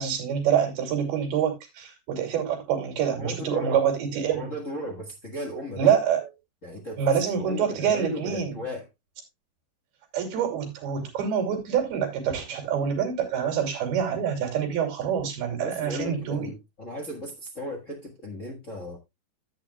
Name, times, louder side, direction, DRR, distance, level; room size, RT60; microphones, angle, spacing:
voice 1, 0.0-4.5 5.7-6.2 7.0-8.5 10.1-16.5, right 8 dB, 80° right, 4.6 m, -26 dB
voice 2, 3.2-3.8 4.3-5.9 6.6-8.9 15.5-19.0, left 1 dB, 50° left, 0.9 m, -36 dB
13.5 x 8.4 x 2.3 m
omnidirectional pair, 4.3 m